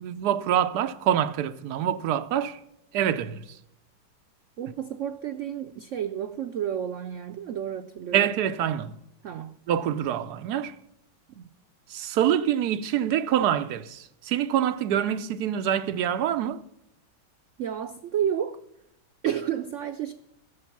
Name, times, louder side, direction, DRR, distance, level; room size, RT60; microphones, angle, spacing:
voice 1, 0.0-2.6 2.9-3.6 8.1-9.0 9.7-10.7 11.9-16.6, right 10 dB, 70° right, 1.1 m, -26 dB
voice 2, 4.6-8.3 9.2-9.6 11.3-11.6 17.6-18.6 19.2-20.1, right 9 dB, 90° right, 0.6 m, -31 dB
16.0 x 7.0 x 5.9 m
omnidirectional pair, 1.9 m